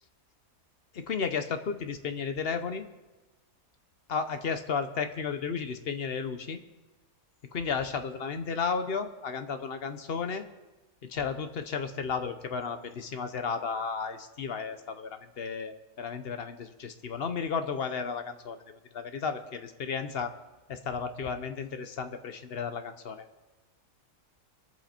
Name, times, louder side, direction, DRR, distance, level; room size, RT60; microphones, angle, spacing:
voice 1, 0.9-2.9 4.1-6.6 7.5-10.4 11.1-18.6 18.9-20.3 20.7-23.3, left 5 dB, 50° left, 9 dB, 0.9 m, -33 dB
22.5 x 8.0 x 4.3 m, 1.1 s
omnidirectional pair, 1.6 m